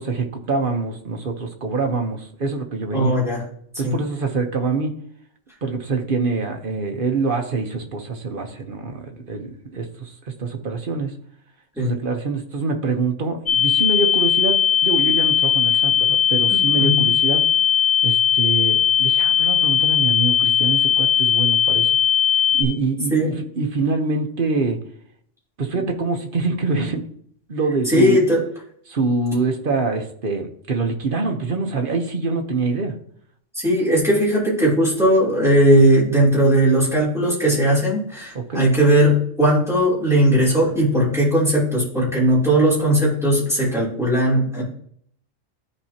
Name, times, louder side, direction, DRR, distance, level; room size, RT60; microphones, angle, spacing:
voice 1, 0.0-3.1 3.8-4.9 5.6-11.1 11.8-17.4 18.0-22.0 22.5-24.8 25.6-27.0 27.5-28.2 28.9-32.9 38.3-38.7, right 4 dB, 45° right, 4 dB, 1.1 m, -25 dB
voice 2, 2.9-3.4 3.8-3.9 11.8-11.9 16.5-17.1 23.1-23.4 27.9-28.4 33.5-44.6, right 1 dB, ahead, -8 dB, 3.2 m, -18 dB
sound 1, 13.5-22.6, left 9 dB, 40° left, 1.6 m, -18 dB
13.0 x 4.6 x 2.9 m, 0.63 s
omnidirectional pair, 1.3 m